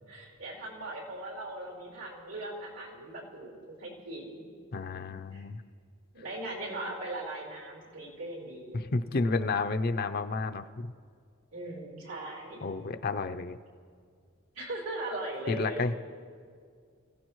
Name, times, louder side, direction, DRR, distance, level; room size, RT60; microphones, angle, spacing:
voice 1, 0.1-5.4 6.1-8.9 11.5-13.0 14.5-15.8, right 1 dB, 90° right, -3 dB, 4.4 m, -40 dB
voice 2, 4.7-5.6 8.7-10.9 12.6-13.6 15.5-15.9, left 3 dB, 50° left, 9 dB, 0.5 m, -31 dB
25.5 x 16.0 x 3.1 m, 2.1 s
head